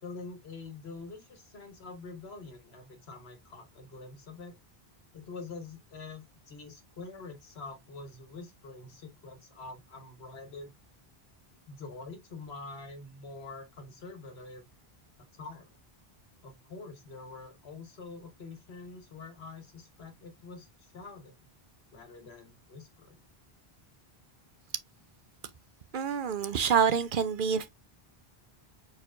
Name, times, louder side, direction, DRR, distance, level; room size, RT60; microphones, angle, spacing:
voice 1, 0.0-4.5 5.1-10.7 11.7-14.6 15.3-15.7 16.4-21.4 21.9-23.2, left 3 dB, 80° left, 1.5 m, -45 dB
voice 2, 25.9-27.7, right 7 dB, 60° right, 0.7 m, -27 dB
4.7 x 4.4 x 2.5 m
omnidirectional pair, 1.0 m